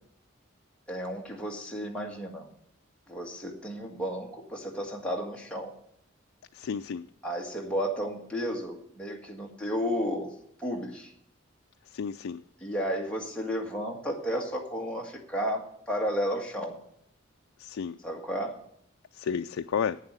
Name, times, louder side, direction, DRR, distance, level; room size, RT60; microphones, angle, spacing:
voice 1, 0.9-2.5 3.1-5.7 7.2-10.3 10.6-11.1 12.6-16.8 18.0-18.6, equal, 5° left, -1 dB, 1.7 m, -33 dB
voice 2, 6.5-7.1 11.9-12.4 17.6-18.0 19.1-20.0, left 6 dB, 80° left, 8 dB, 0.4 m, -32 dB
8.9 x 7.4 x 8.7 m, 0.71 s
head